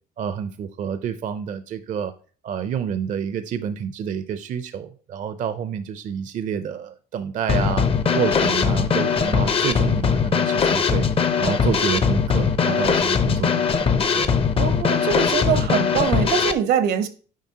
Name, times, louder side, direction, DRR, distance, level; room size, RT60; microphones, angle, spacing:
voice 1, 0.2-2.1 2.4-7.9 8.1-11.0 11.4-13.9 14.1-14.3, right 8 dB, 50° right, 0.5 m, -28 dB
Drum kit / Snare drum, 7.5-16.5, left 6 dB, 35° left, 0.6 m, -20 dB
voice 2, 14.6-17.1, right 8 dB, 75° right, 0.8 m, -23 dB
7.4 x 5.0 x 2.8 m
cardioid pair, 110°, 17 cm